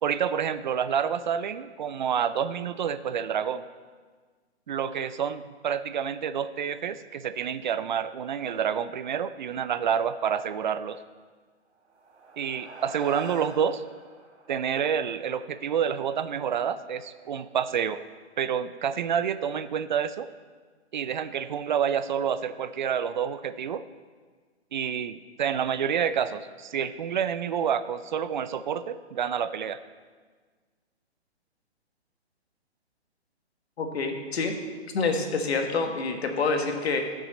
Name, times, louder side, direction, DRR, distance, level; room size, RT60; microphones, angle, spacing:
voice 1, 0.0-3.7 4.7-11.0 12.4-13.8 14.5-18.0 18.4-20.3 20.9-23.8 24.7-29.8, right 8 dB, 45° right, 13 dB, 0.4 m, -28 dB
sound 1, 11.8-16.5, right 3 dB, 75° right, 2.0 m, -46 dB
voice 2, 33.8-34.5 34.9-37.0, left 4 dB, 65° left, 5 dB, 1.5 m, -27 dB
13.5 x 6.2 x 4.1 m, 1.5 s
hypercardioid pair, 145°, 34 cm